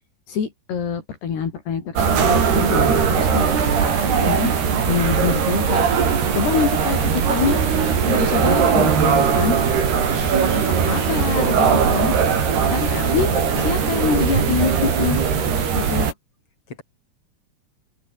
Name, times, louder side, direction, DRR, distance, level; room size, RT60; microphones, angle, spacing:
voice 1, 0.3-4.5 4.9-6.0 6.3-7.6 8.1-9.6 10.9-12.2 12.7-13.3 13.6-15.2 15.8-16.1, left 7 dB, 70° left, 6.1 m, -25 dB
sound 1, 2.0-16.1, right 6 dB, 70° right, 6.3 m, -19 dB
voice 2, 10.1-10.9 12.8-13.7 15.1-15.5 16.7-16.8, left 4 dB, 30° left, 7.2 m, -34 dB
omnidirectional pair, 4.9 m